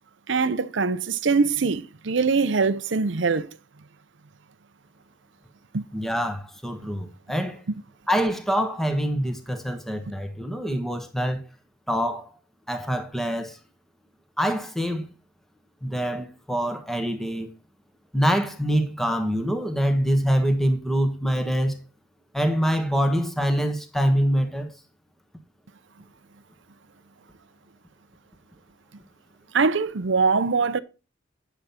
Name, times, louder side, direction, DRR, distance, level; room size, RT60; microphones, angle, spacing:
voice 1, 0.3-3.5 5.7-5.8 29.5-30.8, right 4 dB, 65° right, 0.6 m, -22 dB
voice 2, 5.9-7.6 8.1-11.4 11.9-12.3 12.7-13.6 14.4-15.1 15.8-17.5 18.1-21.8 22.3-24.7, equal, ahead, 1.2 m, -25 dB
9.9 x 6.9 x 4.3 m
head